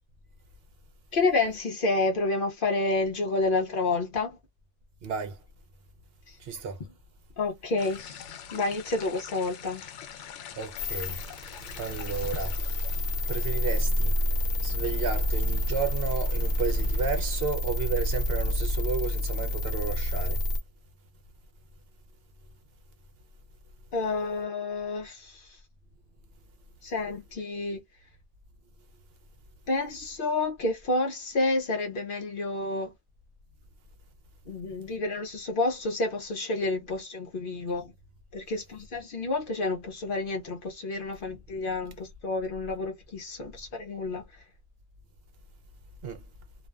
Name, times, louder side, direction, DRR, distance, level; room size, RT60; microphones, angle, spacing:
voice 1, 1.1-4.4 6.3-6.4 7.4-9.9 23.9-25.6 26.8-27.8 29.7-32.9 34.5-37.9 38.3-44.3, left 3 dB, 55° left, 0.7 m, -29 dB
voice 2, 5.0-5.4 6.4-6.8 10.6-11.2 11.8-12.6 13.3-14.1 14.6-20.4 46.0-46.2, right 5 dB, 65° right, 0.8 m, -32 dB
sound 1, 7.8-17.4, left 8 dB, 85° left, 0.9 m, -46 dB
sound 2, 10.8-20.6, equal, 40° left, 1.0 m, -28 dB
2.5 x 2.2 x 2.3 m
omnidirectional pair, 1.2 m